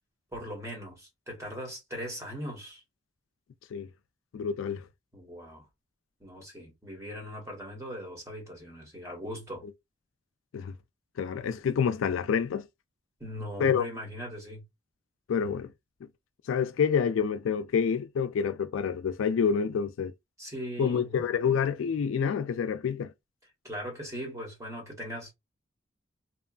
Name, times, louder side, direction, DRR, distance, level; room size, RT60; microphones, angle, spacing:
voice 1, 0.3-2.8 5.1-5.7 6.2-9.7 13.2-14.6 20.4-21.2 23.6-25.3, equal, 15° right, 1.3 m, -39 dB
voice 2, 4.3-4.8 10.5-10.7 11.2-12.7 13.6-13.9 15.3-15.7 16.5-20.1 20.8-23.1, left 6 dB, 70° left, 0.3 m, -27 dB
2.9 x 2.3 x 2.4 m
head